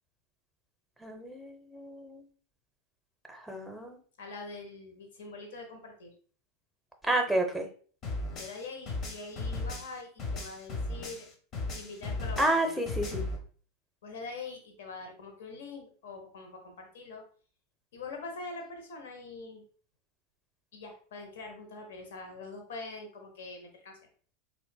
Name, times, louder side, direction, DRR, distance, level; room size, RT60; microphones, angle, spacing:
voice 1, 1.0-2.3 3.3-4.0 7.0-7.7 12.4-13.2, right 1 dB, ahead, 4 dB, 0.7 m, -30 dB
voice 2, 4.2-6.1 8.3-11.3 11.7-12.8 14.0-17.2 17.9-19.6 20.7-24.0, left 3 dB, 70° left, 3 dB, 0.9 m, -44 dB
sound 1, 8.0-11.3 11.5-13.4, left 2 dB, 40° left, 0.7 m, -36 dB
3.7 x 2.4 x 2.2 m, 0.44 s
hypercardioid pair, 90°, 0 cm